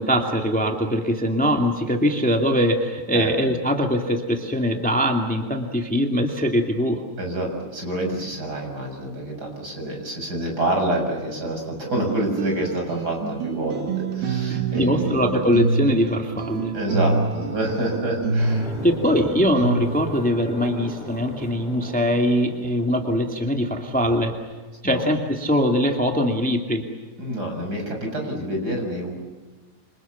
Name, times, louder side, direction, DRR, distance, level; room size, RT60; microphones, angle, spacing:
voice 1, 0.0-7.0 14.5-16.7 18.8-24.3 24.8-26.8, equal, 5° left, 3 dB, 0.9 m, -22 dB
voice 2, 7.2-15.1 16.7-19.0 24.8-25.0 27.2-29.1, right 1 dB, 25° right, 2 dB, 7.1 m, -27 dB
sound 1, 12.0-20.2, right 4 dB, 75° right, 4.1 m, -27 dB
sound 2, 18.4-24.2, left 1 dB, 45° left, 7.8 m, -38 dB
28.0 x 27.0 x 7.2 m, 1.3 s
omnidirectional pair, 4.6 m